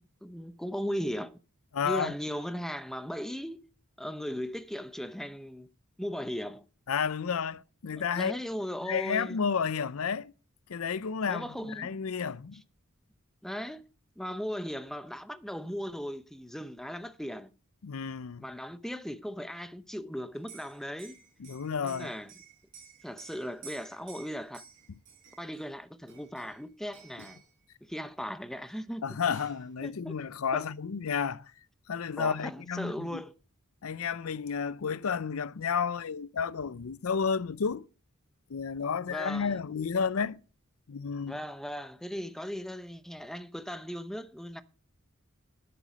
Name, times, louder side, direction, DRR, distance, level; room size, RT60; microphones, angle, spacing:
voice 1, 0.0-1.4 1.8-3.7 4.0-5.7 6.0-6.6 8.1-9.4 11.3-12.0 13.4-13.9 14.2-17.5 18.4-21.2 21.8-22.3 23.0-24.6 25.4-27.4 27.8-29.4 29.8-30.1 30.5-30.7 32.2-33.3 39.1-39.6 41.3-44.6, equal, ahead, 0.8 m, -37 dB
voice 2, 1.7-2.1 6.9-8.4 8.9-10.3 10.7-12.6 17.8-18.4 21.4-22.1 29.0-31.5 31.9-33.2 33.8-37.9 38.5-40.4 40.9-41.4, left 6 dB, 75° left, 0.5 m, -31 dB
Liquid, 20.3-25.6 26.1-26.6 26.9-27.5 28.7-28.8 29.0-29.7, right 6 dB, 65° right, 4.9 m, -52 dB
11.5 x 10.0 x 5.1 m
head